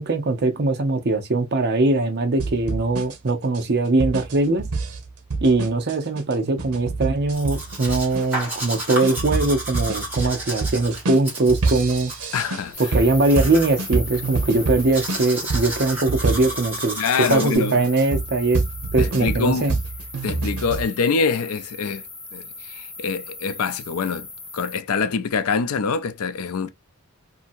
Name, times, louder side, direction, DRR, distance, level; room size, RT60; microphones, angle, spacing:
voice 1, 0.0-4.7 5.4-12.1 12.8-17.0 17.3-18.6 18.9-19.7, right 2 dB, 50° right, 0.7 m, -21 dB
sound 1, 2.4-16.9 17.4-20.9, right 3 dB, 85° right, 0.8 m, -27 dB
Domestic sounds home sounds, 7.3-17.6, right 1 dB, 10° right, 1.4 m, -33 dB
voice 2, 12.3-12.9 17.0-17.8 19.0-19.8 20.2-22.0 22.3-24.3 24.5-26.7, left 5 dB, 75° left, 0.4 m, -25 dB
sound 2, 12.7-24.8, left 3 dB, 40° left, 1.2 m, -38 dB
2.7 x 2.7 x 2.5 m
head